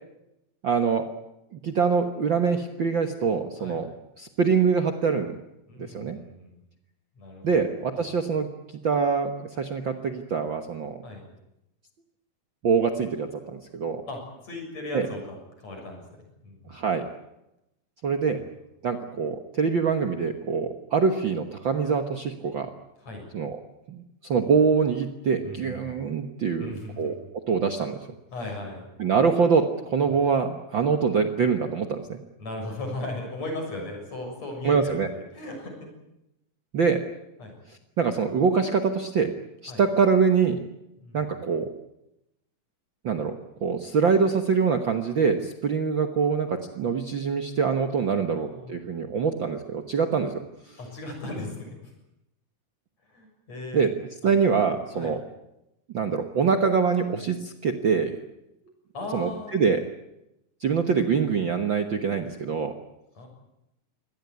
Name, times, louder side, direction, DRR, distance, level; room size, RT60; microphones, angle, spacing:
voice 1, 0.6-1.1 1.5-3.9 4.2-5.3 5.8-6.2 7.4-8.5 8.8-11.0 12.6-14.0 14.9-15.1 16.7-17.0 18.0-18.4 18.8-22.7 23.3-23.6 23.9-27.2 27.5-28.0 29.0-32.2 34.6-35.1 36.7-37.0 37.7-39.3 39.6-40.6 41.1-41.7 43.0-50.4 50.7-50.8 53.7-53.9 54.2-55.2 55.9-58.2 59.1-59.8 60.6-62.7, right 5 dB, 50° right, 6 dB, 1.6 m, -24 dB
voice 2, 5.7-6.6 7.2-7.7 8.0-8.1 11.0-11.2 14.1-15.2 15.6-16.8 23.0-23.3 25.4-26.0 26.6-27.1 28.3-28.8 32.4-35.9 37.4-37.5 39.7-39.8 41.0-41.2 48.3-48.8 50.8-51.8 53.1-53.9 54.2-54.3 54.9-55.1 58.9-59.7 63.2-63.3, left 2 dB, 55° left, 2 dB, 8.1 m, -37 dB
24.5 x 18.0 x 9.5 m, 0.88 s
omnidirectional pair, 3.6 m